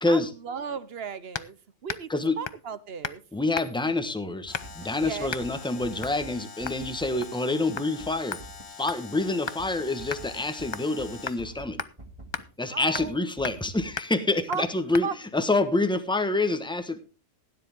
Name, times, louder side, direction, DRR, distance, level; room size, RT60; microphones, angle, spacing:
voice 1, 0.1-2.1 2.4-3.2 5.0-5.3 12.7-13.3 14.5-14.7 15.0-15.2, right 6 dB, 55° right, 15 dB, 1.1 m, -35 dB
sound 1, 1.3-1.5 1.9-2.1 2.5-2.7 3.0-3.2 3.5-3.9 4.5-4.8 5.3-5.5 6.0-6.2 6.7-6.8 7.2-7.5 7.8-7.9 8.3-9.6 10.1-10.2 10.7-11.0 11.3-11.4 11.8-11.9 12.3-12.5 12.9-13.2 13.4-13.7 14.0-14.1 14.5-14.7 14.9-15.1, left 5 dB, 35° left, 0.4 m, -36 dB
voice 2, 3.3-8.4 8.8-11.8 12.6-15.1 15.3-17.0, left 2 dB, 5° left, 9 dB, 1.1 m, -27 dB
sound 2, 4.4-7.3 7.6-7.7 8.0-8.9 9.2-9.3 9.6-12.5 12.8-13.9, right 2 dB, 25° right, 2.0 m, -45 dB
Alarm, 4.5-11.5, left 5 dB, 60° left, 2.1 m, -45 dB
16.5 x 10.0 x 3.5 m, 0.32 s
omnidirectional pair, 1.3 m